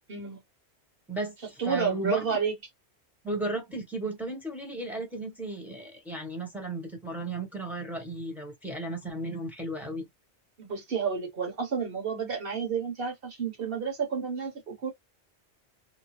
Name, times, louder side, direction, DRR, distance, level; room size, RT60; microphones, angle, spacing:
voice 1, 0.1-0.4 1.6-2.5 10.6-14.9, right 6 dB, 55° right, 1.3 m, -30 dB
voice 2, 1.1-2.4 3.2-10.1, right 2 dB, ahead, 1.1 m, -35 dB
2.8 x 2.1 x 3.1 m
omnidirectional pair, 1.1 m